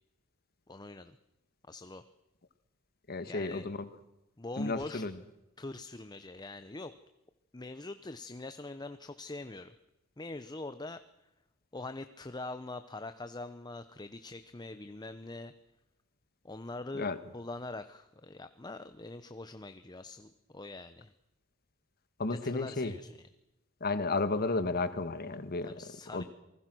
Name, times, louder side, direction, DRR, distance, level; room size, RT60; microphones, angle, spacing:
voice 1, 0.7-1.2 1.7-2.1 3.3-3.6 4.4-5.0 5.6-7.0 7.5-9.7 10.2-11.0 11.7-15.5 16.4-21.1 22.3-23.1 25.6-26.2, left 2 dB, 20° left, 10 dB, 0.8 m, -43 dB
voice 2, 3.1-3.9 4.6-5.2 16.9-17.2 22.2-22.9 23.8-25.8 26.1-26.2, left 3 dB, 50° left, 12 dB, 1.5 m, -32 dB
28.5 x 20.0 x 6.2 m, 0.94 s
head